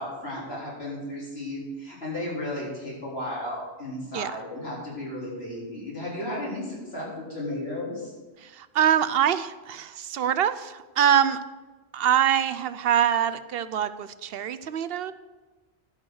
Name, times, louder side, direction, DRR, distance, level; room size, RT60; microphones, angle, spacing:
voice 1, 0.0-8.1, left 1 dB, 75° left, -6 dB, 4.4 m, -34 dB
voice 2, 8.6-11.4 11.9-15.1, right 9 dB, 70° right, 14 dB, 0.8 m, -24 dB
12.5 x 6.3 x 6.3 m, 1.3 s
omnidirectional pair, 1.1 m